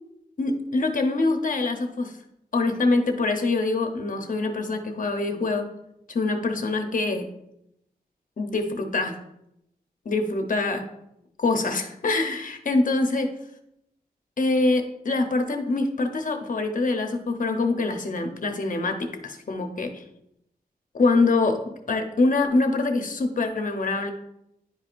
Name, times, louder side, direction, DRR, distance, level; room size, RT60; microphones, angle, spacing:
voice 1, 0.4-2.1 2.5-5.7 6.1-7.2 8.4-9.2 10.1-10.8 11.4-13.3 14.4-20.0 20.9-21.6 21.9-24.1, left 3 dB, 55° left, 5 dB, 0.8 m, -24 dB
10.5 x 4.8 x 2.5 m, 0.80 s
wide cardioid pair, 140°, 16 cm